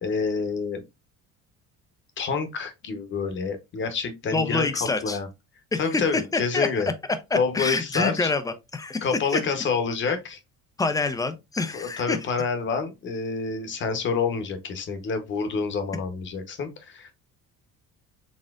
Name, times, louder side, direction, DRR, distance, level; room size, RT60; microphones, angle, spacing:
voice 1, 0.0-0.8 2.2-4.7 5.0-5.3 5.8-6.9 7.3-8.3 9.0-10.4 11.7-17.1, left 5 dB, 35° left, 0.9 m, -28 dB
voice 2, 4.3-5.2 5.7-6.7 7.3-9.0 9.3-9.4 10.1-10.2 10.8-12.2, left 3 dB, 10° left, 0.4 m, -26 dB
4.2 x 3.7 x 2.4 m
cardioid pair, 155°, 32 cm